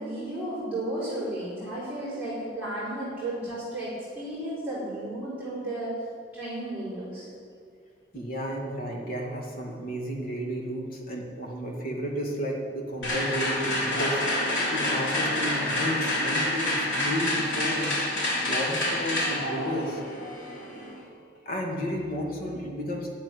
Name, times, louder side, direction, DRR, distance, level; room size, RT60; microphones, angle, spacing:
voice 1, 0.0-5.9 6.3-7.3, right 1 dB, 10° right, -12 dB, 4.5 m, -33 dB
voice 2, 8.1-14.2 14.5-18.0 18.4-20.0 21.5-23.2, equal, 55° left, 0 dB, 2.3 m, -32 dB
sound 1, 13.0-21.0, left 1 dB, 85° left, 4.0 m, -28 dB
13.0 x 7.4 x 9.9 m, 2.2 s
head